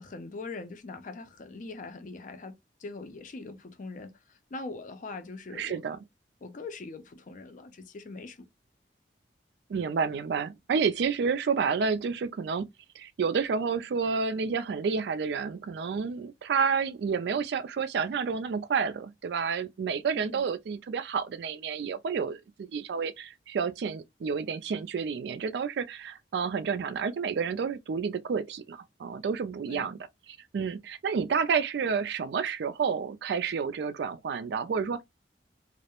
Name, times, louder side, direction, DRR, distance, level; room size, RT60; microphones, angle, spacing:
voice 1, 0.0-5.8 6.4-8.5 20.2-20.4 29.7-29.9, left 3 dB, 45° left, 0.4 m, -42 dB
voice 2, 5.5-6.0 9.7-12.7 13.0-30.0 30.5-35.0, right 5 dB, 65° right, 0.3 m, -30 dB
2.3 x 2.0 x 2.9 m
head